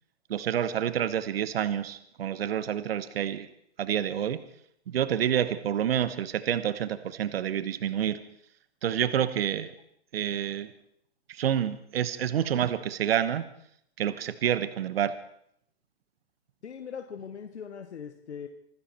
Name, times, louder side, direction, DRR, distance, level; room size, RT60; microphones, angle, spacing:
voice 1, 0.3-3.5 3.8-4.4 4.9-8.2 8.8-9.7 10.1-10.7 11.3-13.4 14.0-15.1, right 9 dB, 65° right, 14 dB, 1.2 m, -28 dB
voice 2, 16.6-18.5, left 7 dB, 85° left, 6 dB, 1.6 m, -40 dB
25.5 x 13.0 x 4.3 m, 0.69 s
hypercardioid pair, 155°, 33 cm